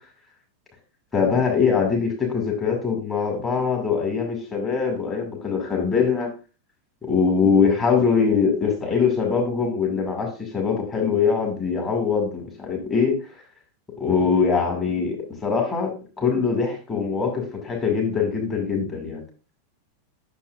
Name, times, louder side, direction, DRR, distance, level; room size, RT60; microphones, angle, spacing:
voice 1, 1.1-6.3 7.0-13.2 14.0-15.2 15.4-19.2, left 5 dB, 15° left, 0 dB, 2.1 m, -22 dB
8.4 x 6.4 x 2.4 m, 0.34 s
figure-of-eight pair, 90°, 0 cm